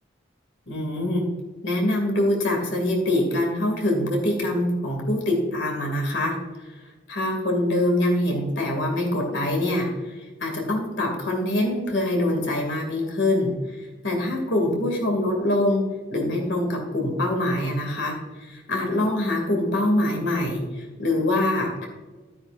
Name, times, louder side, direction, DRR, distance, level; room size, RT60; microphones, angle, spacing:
voice 1, 0.7-1.3 1.6-6.4 7.1-21.9, left 1 dB, 65° left, 0 dB, 2.6 m, -24 dB
11.5 x 9.9 x 2.7 m, 1.3 s
head